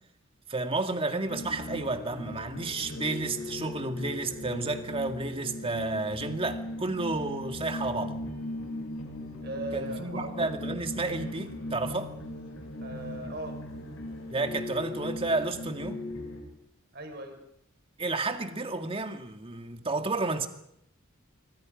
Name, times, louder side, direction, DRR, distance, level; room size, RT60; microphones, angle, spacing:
voice 1, 0.5-8.2 9.7-12.1 14.3-16.1 18.0-20.5, right 3 dB, 25° right, 1.9 m, -31 dB
sound 1, 1.3-16.4, left 1 dB, 85° left, 7.7 m, -38 dB
voice 2, 9.4-10.4 12.8-13.6 16.9-17.4, right 2 dB, 50° right, 4.8 m, -38 dB
26.0 x 25.0 x 5.2 m
head